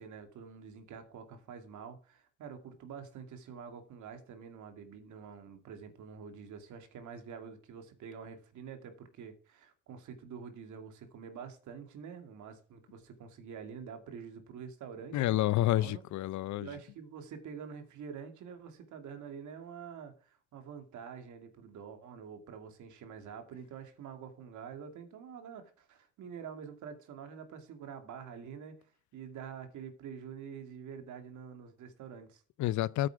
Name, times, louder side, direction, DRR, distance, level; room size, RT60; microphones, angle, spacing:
voice 1, 0.0-16.0 16.6-28.8 29.1-32.4, right 7 dB, 70° right, 2.5 m, -47 dB
voice 2, 15.1-16.7 32.6-33.1, left 15 dB, 70° left, 0.7 m, -29 dB
9.6 x 7.9 x 4.7 m
supercardioid pair, 80°, 31 cm